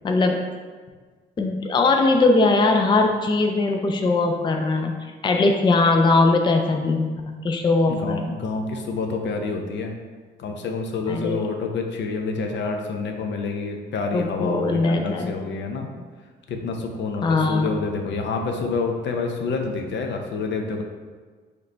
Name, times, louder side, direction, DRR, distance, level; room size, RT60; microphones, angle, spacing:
voice 1, 0.0-0.4 1.4-5.0 5.2-8.3 11.1-11.4 14.1-15.4 17.2-17.8, left 3 dB, 25° left, 3 dB, 0.4 m, -20 dB
voice 2, 7.9-9.9 10.4-15.9 16.5-20.8, left 4 dB, 65° left, 3 dB, 0.6 m, -28 dB
4.7 x 3.2 x 3.3 m, 1.5 s
cardioid pair, 90°, 20 cm